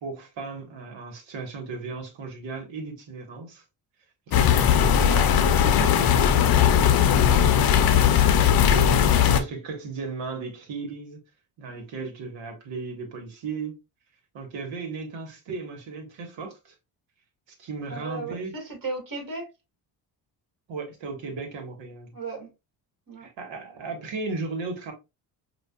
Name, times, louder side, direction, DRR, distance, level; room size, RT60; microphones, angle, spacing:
voice 1, 0.0-3.6 4.3-7.6 8.2-11.2 11.6-13.8 14.3-16.7 17.6-18.5 20.7-22.1 23.2-24.9, right 4 dB, 70° right, 1.4 m, -36 dB
sound 1, 4.3-9.4, left 9 dB, 50° left, 0.7 m, -19 dB
voice 2, 17.9-19.5 22.1-22.5 23.1-23.3, right 3 dB, 45° right, 2.1 m, -35 dB
5.1 x 2.4 x 2.3 m
supercardioid pair, 70°, 47 cm